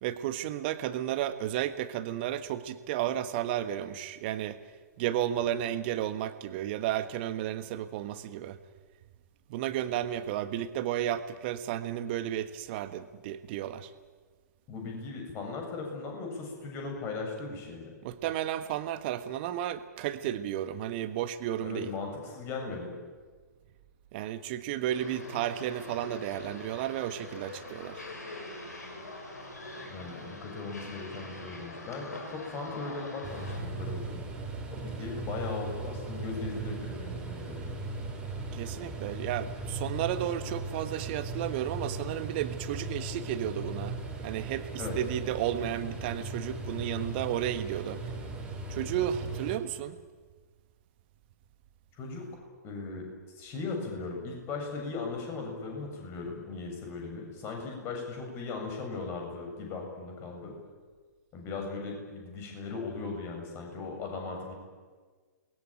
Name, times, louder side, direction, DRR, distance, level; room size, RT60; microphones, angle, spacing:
voice 1, 0.0-4.6 5.0-8.6 9.5-13.9 18.0-21.9 24.1-28.0 38.5-43.9 44.2-44.7 44.9-48.0 48.7-50.0, right 11 dB, 35° right, 12 dB, 1.5 m, -33 dB
voice 2, 14.7-17.9 21.6-23.0 29.8-34.2 34.7-37.7 44.8-45.0 52.0-52.2 52.6-53.1 53.4-60.6 61.3-64.5, left 4 dB, 25° left, 2 dB, 7.4 m, -38 dB
sound 1, 24.9-33.6, left 2 dB, 70° left, 7.0 m, -44 dB
sound 2, 33.2-49.6, right 2 dB, 10° right, 4.5 m, -38 dB
29.0 x 21.5 x 9.0 m, 1.5 s
figure-of-eight pair, 115°, 9 cm